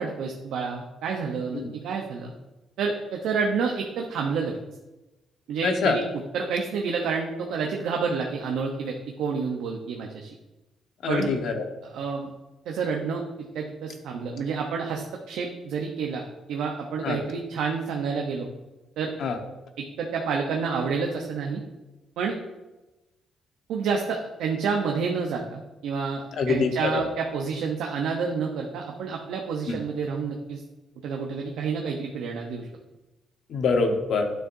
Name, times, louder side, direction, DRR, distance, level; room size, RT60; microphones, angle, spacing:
voice 1, 0.0-2.3 2.8-4.6 5.5-6.0 6.3-10.3 11.1-11.3 11.8-12.3 12.7-13.2 13.5-16.2 16.5-18.5 19.0-19.1 19.8-21.6 22.2-22.4 23.7-30.6 31.0-32.7, right 5 dB, 85° right, 1 dB, 0.7 m, -29 dB
voice 2, 5.6-6.0 11.0-11.6 17.0-17.2 19.2-19.4 26.4-27.0 29.7-29.8 33.5-34.3, left 4 dB, 65° left, 5 dB, 1.1 m, -25 dB
9.4 x 6.3 x 2.6 m, 1.0 s
cardioid pair, 90°, 0 cm